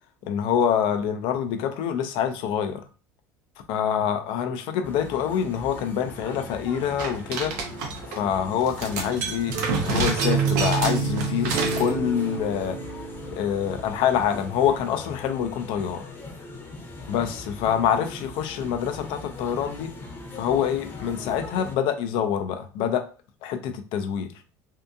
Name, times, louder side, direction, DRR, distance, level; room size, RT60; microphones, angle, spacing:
voice 1, 0.3-2.8 3.7-7.5 8.1-12.8 13.3-16.0 17.1-19.9 20.3-23.0 23.4-24.3, left 8 dB, 70° left, 7 dB, 0.5 m, -26 dB
sound 1, 4.8-21.8, left 2 dB, 25° left, 0.8 m, -40 dB
sound 2, 7.0-8.2 8.6-11.9, right 4 dB, 85° right, 0.7 m, -29 dB
sound 3, 9.5-14.4, right 6 dB, 45° right, 0.5 m, -29 dB
2.7 x 2.5 x 2.3 m, 0.36 s
supercardioid pair, 100°, 9 cm